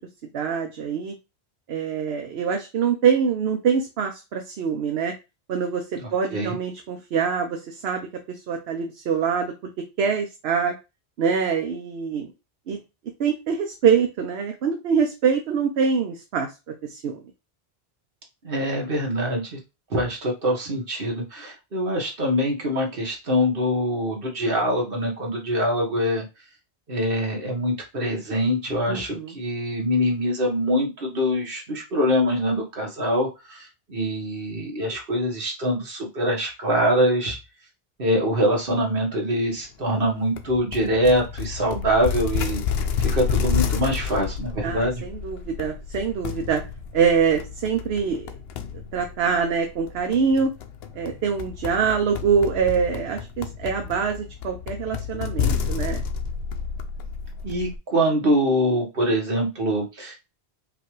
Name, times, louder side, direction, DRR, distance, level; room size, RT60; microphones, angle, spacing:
voice 1, 0.3-1.1 1.7-5.1 5.5-10.8 11.2-12.3 12.7-12.8 13.2-16.5 16.9-17.2 28.9-29.4 44.6-46.6 46.9-48.3 48.9-50.5 50.9-56.0, right 6 dB, 75° right, 4 dB, 0.9 m, -24 dB
voice 2, 6.0-6.6 18.4-19.6 19.9-26.3 26.9-37.4 38.0-42.6 43.0-45.0 57.4-60.2, equal, 60° right, 0 dB, 1.6 m, -24 dB
sound 1, 40.4-57.8, left 7 dB, 75° left, 0.8 m, -30 dB
5.0 x 2.4 x 3.1 m, 0.25 s
omnidirectional pair, 1.1 m